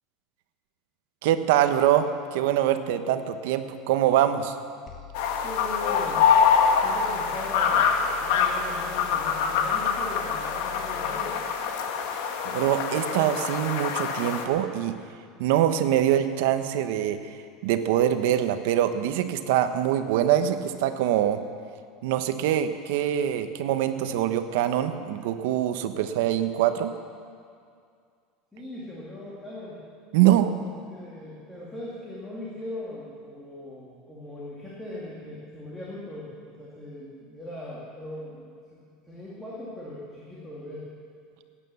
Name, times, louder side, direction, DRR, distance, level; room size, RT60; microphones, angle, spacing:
voice 1, 1.2-4.5 12.4-15.0 15.4-17.4 17.6-21.4 22.0-26.9 30.1-30.5, right 11 dB, 70° right, 9 dB, 0.9 m, -24 dB
sound 1, 4.9-11.3, left 3 dB, 20° left, 1.4 m, -45 dB
sound 2, 5.1-14.4, left 6 dB, 65° left, 1.4 m, -25 dB
voice 2, 5.4-6.2 6.8-11.5 28.5-29.8 30.6-40.9, left 1 dB, 5° left, -7 dB, 2.2 m, -40 dB
17.5 x 9.1 x 6.9 m, 2.3 s
supercardioid pair, 165°, 0 cm